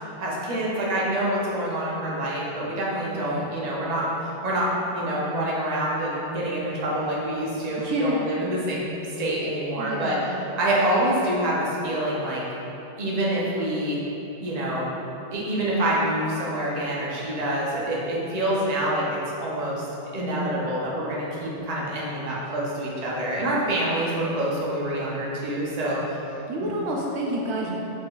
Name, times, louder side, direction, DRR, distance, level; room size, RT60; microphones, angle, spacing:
voice 1, 0.2-10.2 10.6-12.4 13.0-14.0 14.4-14.9 15.3-19.8 20.1-26.2, right 1 dB, 40° right, -5 dB, 0.8 m, -26 dB
voice 2, 3.0-3.5 7.8-8.3 9.8-10.4 26.5-27.8, right 1 dB, 75° right, -2 dB, 0.9 m, -29 dB
4.9 x 4.4 x 2.4 m, 3.0 s
omnidirectional pair, 1.2 m